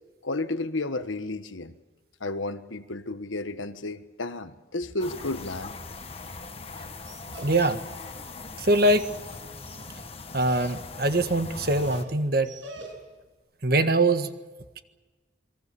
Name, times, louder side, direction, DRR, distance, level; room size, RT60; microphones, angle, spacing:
voice 1, 0.2-1.7 2.2-5.7, left 2 dB, 85° left, 1.4 m, -32 dB
sound 1, 5.0-12.0, left 3 dB, 30° left, 1.5 m, -40 dB
Dog, 5.1-13.3, right 2 dB, 80° right, 7.5 m, -49 dB
voice 2, 7.4-7.8 8.6-9.1 10.3-12.5 13.6-14.3, right 2 dB, 50° right, 1.6 m, -23 dB
28.0 x 23.0 x 7.0 m
head